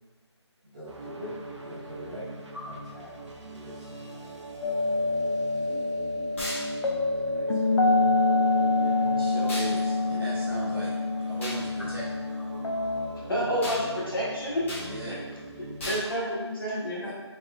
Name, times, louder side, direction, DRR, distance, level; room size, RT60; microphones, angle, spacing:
voice 1, 0.6-2.2 2.6-3.1 3.4-3.9 7.1-8.5 8.7-9.3, left 1 dB, 15° right, -10 dB, 0.8 m, -44 dB
sound 1, 0.8-16.0, right 2 dB, 90° right, 0.7 m, -42 dB
sound 2, 4.6-13.1, left 2 dB, 70° left, 0.7 m, -26 dB
sound 3, 6.4-6.7 9.5-9.7 11.4-11.6 13.6-13.8 14.7-14.9 15.8-16.1, left 1 dB, 25° left, 1.2 m, -34 dB
voice 2, 9.2-10.9 11.2-12.0 14.8-15.1 17.0-17.1, right 2 dB, 50° right, -5 dB, 0.7 m, -37 dB
voice 3, 13.3-14.6 15.1-15.2 15.9-17.1, equal, 50° left, -5 dB, 1.1 m, -29 dB
4.1 x 3.6 x 2.4 m, 1.2 s
figure-of-eight pair, 170°, 15 cm